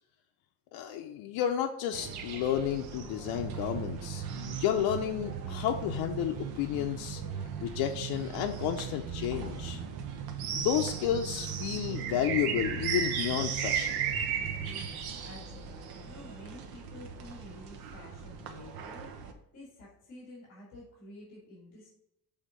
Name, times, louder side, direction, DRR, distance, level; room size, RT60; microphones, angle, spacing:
voice 1, 0.7-7.2 7.6-9.8 10.5-14.1, left 10 dB, 90° left, 3 dB, 0.6 m, -31 dB
sound 1, 1.9-19.3, right 7 dB, 70° right, 0.9 m, -38 dB
sound 2, 3.2-14.9, right 8 dB, 40° right, 0.6 m, -40 dB
voice 2, 14.8-21.9, left 1 dB, 40° left, -5 dB, 2.1 m, -50 dB
6.4 x 3.5 x 5.0 m, 0.83 s
cardioid pair, 175°, 38 cm